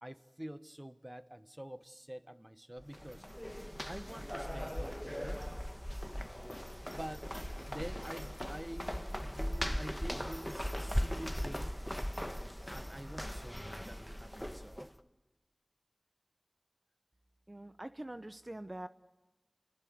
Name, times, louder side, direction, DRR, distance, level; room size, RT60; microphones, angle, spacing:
voice 1, 0.0-3.2 3.8-5.4 6.9-7.4 7.6-11.8 12.7-15.0, equal, 20° right, 12 dB, 1.2 m, -47 dB
sound 1, 2.8-14.9, equal, 10° left, 1.3 m, -39 dB
voice 2, 17.5-18.9, right 1 dB, 40° right, 10 dB, 0.8 m, -44 dB
29.5 x 20.5 x 7.9 m, 1.1 s
wide cardioid pair, 40°, 0 cm